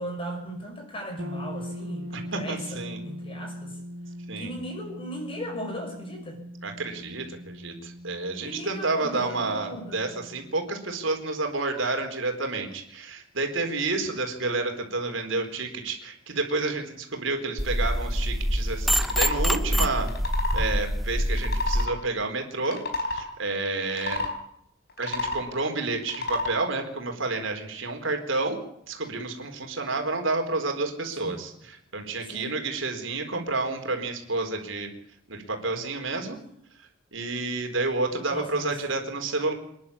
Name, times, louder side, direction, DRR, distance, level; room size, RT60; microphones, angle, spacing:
voice 1, 0.0-3.8 4.4-6.4 8.4-10.1 31.2-31.4 32.3-32.6 38.3-38.8, equal, 25° left, 3 dB, 6.1 m, -37 dB
sound 1, 1.2-11.0, equal, 85° right, 2.5 m, -40 dB
voice 2, 2.3-3.0 4.3-4.5 6.6-20.1 20.5-22.8 23.1-24.2 25.0-28.6 28.9-34.9 35.3-36.4 37.1-39.5, right 3 dB, 65° right, 4 dB, 4.2 m, -30 dB
sound 2, 17.6-21.9, equal, ahead, 0.8 m, -25 dB
sound 3, 19.0-19.4 20.0-20.7 21.3-22.0 22.6-23.3 23.9-24.3 24.9-25.5 26.0-26.5, left 3 dB, 50° left, 4.5 m, -30 dB
27.5 x 11.0 x 8.6 m, 0.75 s
head